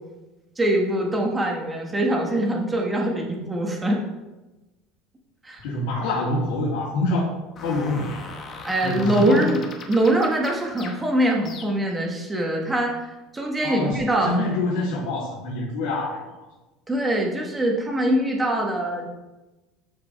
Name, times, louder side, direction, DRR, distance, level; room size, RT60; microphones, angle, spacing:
voice 1, 0.6-4.0 5.4-5.6 8.6-9.6 9.9-14.4 16.9-19.1, right 1 dB, 10° right, 0 dB, 1.3 m, -23 dB
voice 2, 5.6-7.2 7.6-8.2 8.8-9.4 13.6-14.0 14.2-16.3, left 2 dB, 80° left, -8 dB, 2.8 m, -25 dB
sound 1, 7.6-12.0, left 4 dB, 30° left, 1.1 m, -40 dB
13.0 x 5.1 x 3.4 m, 1.1 s
cardioid pair, 165°, 0 cm